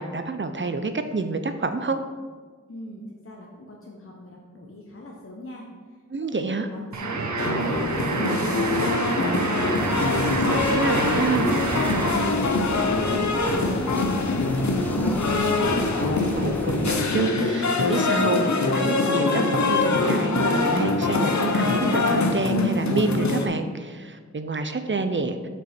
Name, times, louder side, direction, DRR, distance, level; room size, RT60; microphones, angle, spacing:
voice 1, 0.0-2.0 6.1-6.7 10.3-11.5 16.4-25.4, right 3 dB, 40° right, 8 dB, 0.6 m, -28 dB
voice 2, 2.7-5.6 6.6-9.5 10.1-10.7 12.8-15.5, equal, 45° left, -2 dB, 1.0 m, -40 dB
sound 1, 6.9-12.4, right 3 dB, 80° right, 0.7 m, -28 dB
sound 2, 7.4-23.5, left 3 dB, 70° left, 0.7 m, -23 dB
sound 3, 9.7-16.9, left 1 dB, 5° left, 0.8 m, -34 dB
6.2 x 5.5 x 4.3 m, 1.5 s
wide cardioid pair, 45°, 29 cm